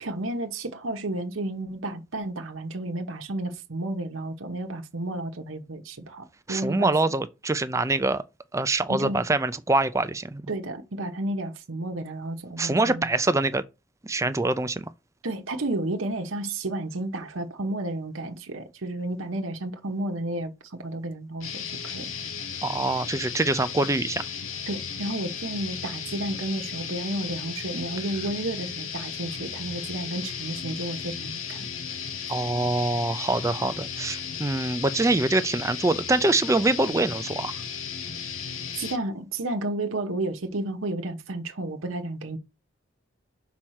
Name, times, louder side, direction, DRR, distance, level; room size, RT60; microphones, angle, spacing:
voice 1, 0.0-6.9 8.9-9.2 10.5-13.1 15.2-22.1 24.7-31.7 38.7-42.4, right 2 dB, 85° right, 1.0 m, -32 dB
voice 2, 6.5-8.2 8.5-10.4 12.6-13.6 14.0-14.9 22.6-24.2 32.3-37.5, right 2 dB, 15° right, 0.4 m, -24 dB
sound 1, 21.4-39.0, left 7 dB, 90° left, 1.0 m, -35 dB
5.8 x 4.4 x 6.3 m
head